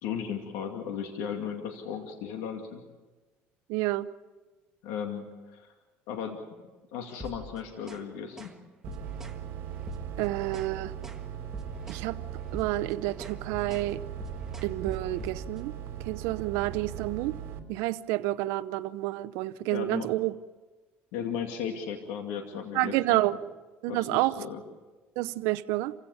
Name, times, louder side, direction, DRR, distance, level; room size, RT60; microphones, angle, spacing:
voice 1, 0.0-2.8 4.8-5.7 6.1-6.4 6.9-8.5 19.7-20.1 21.1-23.2 23.9-24.6, left 7 dB, 80° left, 2.4 m, -36 dB
voice 2, 3.7-4.1 10.2-10.9 11.9-12.2 12.5-14.0 14.6-15.7 16.0-17.4 17.7-20.3 22.7-23.3 23.8-24.4 25.2-25.9, right 17 dB, 80° right, 0.7 m, -29 dB
sound 1, 7.1-8.1 8.4-8.6 8.9-9.4 9.8-10.8 11.0-11.3 11.5-12.1 12.4-15.7, equal, 10° right, 1.5 m, -44 dB
sound 2, 8.8-17.6, right 9 dB, 60° right, 2.4 m, -39 dB
27.5 x 16.0 x 7.1 m
cardioid pair, 125°, 5 cm